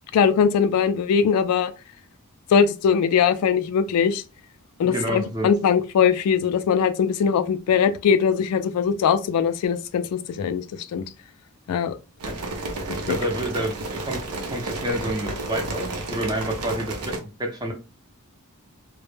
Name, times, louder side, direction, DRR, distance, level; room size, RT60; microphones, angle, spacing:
voice 1, 0.1-1.7 2.5-4.2 4.8-11.0 11.7-11.9, left 7 dB, 80° left, 0.3 m, -21 dB
voice 2, 4.8-5.5 12.2-12.4 12.9-14.2 14.5-17.7, right 1 dB, 20° right, 0.6 m, -29 dB
sound 1, 12.2-17.2, right 2 dB, 75° right, 0.6 m, -31 dB
2.1 x 2.0 x 3.1 m
head